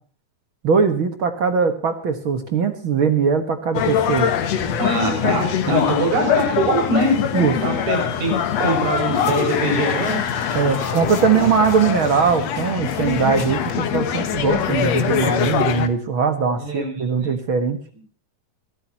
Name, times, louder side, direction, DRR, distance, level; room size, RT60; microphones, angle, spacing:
voice 1, 0.6-4.3 7.3-7.5 10.5-17.8, right 6 dB, 50° right, 8 dB, 1.9 m, -20 dB
sound 1, 3.7-15.9, left 9 dB, 65° left, 2.4 m, -23 dB
voice 2, 4.8-7.1 7.6-8.3 8.6-10.2 16.6-17.3, right 1 dB, 70° right, 3 dB, 7.7 m, -22 dB
sound 2, 9.0-14.4, left 2 dB, 20° left, 3.2 m, -39 dB
25.0 x 13.0 x 2.9 m, 0.38 s
omnidirectional pair, 3.5 m